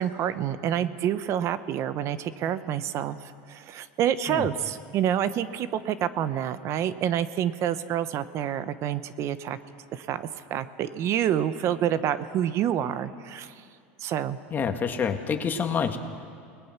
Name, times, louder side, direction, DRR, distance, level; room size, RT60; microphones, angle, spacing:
voice 1, 0.0-9.6 9.9-13.5 14.0-14.4, right 10 dB, 50° right, 13 dB, 1.0 m, -28 dB
voice 2, 14.5-16.0, left 6 dB, 30° left, 6 dB, 1.9 m, -27 dB
29.0 x 20.0 x 6.0 m, 2.3 s
supercardioid pair, 110°, 6 cm